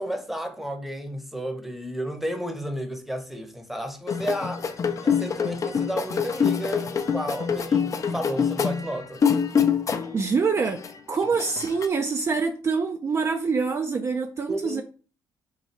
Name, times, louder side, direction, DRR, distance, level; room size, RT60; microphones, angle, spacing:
voice 1, 0.0-4.7 5.0-9.3 14.5-14.8, equal, ahead, 0.8 m, -32 dB
sound 1, 4.1-10.2 10.6-11.9, left 7 dB, 40° left, 0.5 m, -25 dB
voice 2, 10.1-10.8 11.1-14.8, right 5 dB, 30° right, 0.4 m, -25 dB
3.2 x 2.2 x 4.3 m
supercardioid pair, 80°, 9 cm